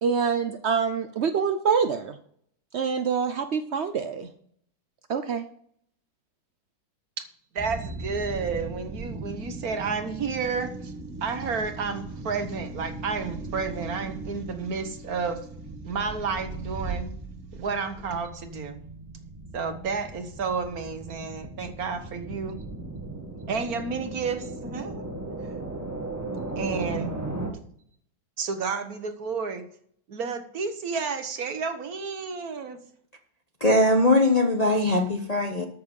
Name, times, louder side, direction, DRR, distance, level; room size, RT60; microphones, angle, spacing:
voice 1, 0.0-2.1 2.7-4.3 5.1-5.5, right 6 dB, 75° right, 0.6 m, -25 dB
voice 2, 7.5-10.9 11.2-15.4 15.8-17.1 17.5-18.8 19.5-22.6 23.5-25.1 26.6-27.1 28.4-29.6 30.1-32.8, right 5 dB, 55° right, 1.5 m, -31 dB
sound 1, 7.6-27.5, right 2 dB, 10° right, 1.9 m, -37 dB
voice 3, 33.6-35.6, left 1 dB, 30° left, 0.7 m, -21 dB
13.5 x 6.6 x 5.4 m
omnidirectional pair, 2.1 m